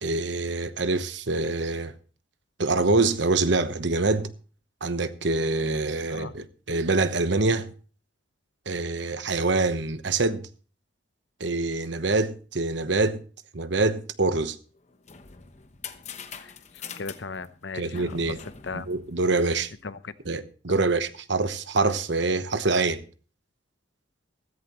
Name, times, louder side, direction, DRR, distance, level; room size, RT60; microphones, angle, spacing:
voice 1, 0.0-1.9 2.6-4.3 4.8-7.7 8.7-10.5 11.4-13.2 13.5-14.6 17.7-18.4 18.7-19.7 20.3-23.0, right 3 dB, 60° right, 1.0 m, -25 dB
sound 1, 14.7-19.8, left 6 dB, 35° left, 1.0 m, -43 dB
voice 2, 16.4-18.4 18.6-18.9 19.8-20.1, left 4 dB, 65° left, 0.8 m, -38 dB
15.5 x 14.5 x 3.1 m
head